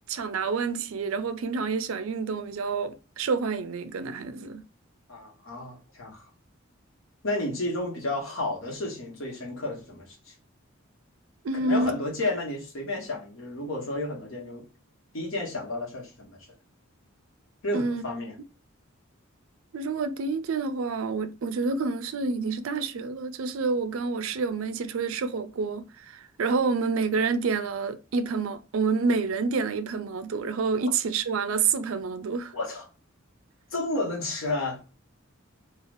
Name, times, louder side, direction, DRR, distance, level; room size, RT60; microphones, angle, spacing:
voice 1, 0.1-4.6 11.4-11.9 17.7-18.0 19.7-32.5, right 4 dB, 85° right, 0.4 m, -28 dB
voice 2, 5.1-6.3 7.2-10.3 11.6-14.6 15.1-16.4 17.6-18.4 32.5-32.9 33.7-34.8, left 2 dB, 75° left, 1.2 m, -31 dB
3.2 x 2.4 x 2.4 m
head